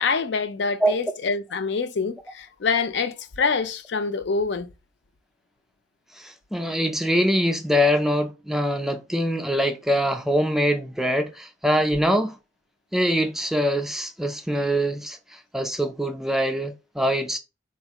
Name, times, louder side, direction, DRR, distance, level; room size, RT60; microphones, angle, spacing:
voice 1, 0.0-4.7, left 4 dB, 60° left, 0.4 m, -25 dB
voice 2, 6.2-12.4 12.9-17.4, equal, ahead, 0.4 m, -23 dB
4.3 x 2.4 x 2.9 m
head